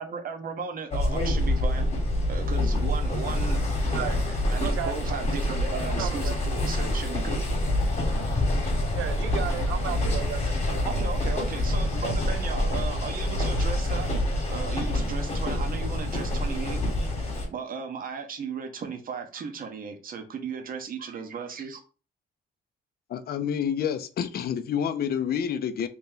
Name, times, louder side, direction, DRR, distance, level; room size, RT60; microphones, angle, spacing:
voice 1, 0.0-1.9 2.3-4.2 4.5-7.4 10.8-14.1 14.5-16.8 17.5-21.8, right 5 dB, 45° right, 0.8 m, -35 dB
sound 1, 0.9-17.5, left 1 dB, 35° left, 1.2 m, -26 dB
voice 2, 4.6-4.9 6.0-6.3 8.9-10.9, right 11 dB, 80° right, 0.5 m, -34 dB
voice 3, 23.1-25.9, left 8 dB, 50° left, 0.5 m, -28 dB
2.9 x 2.6 x 3.7 m
cardioid pair, 90°, 20 cm